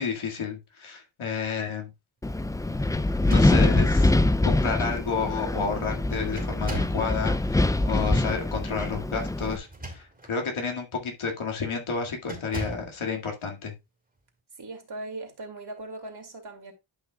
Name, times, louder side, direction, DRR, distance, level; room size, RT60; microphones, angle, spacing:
voice 1, 0.0-1.9 3.3-4.1 4.4-13.7, left 5 dB, 80° left, 2.1 m, -31 dB
Wind, 2.2-9.6, left 2 dB, 10° left, 0.3 m, -24 dB
sound 1, 3.1-4.0 4.9-5.0 5.3-5.7 6.4-7.1 9.5-10.4 10.9-11.2 12.3-13.0, right 2 dB, 20° right, 2.3 m, -39 dB
voice 2, 14.6-16.7, right 2 dB, 55° right, 2.5 m, -39 dB
11.5 x 5.7 x 2.3 m
wide cardioid pair, 95°, 48 cm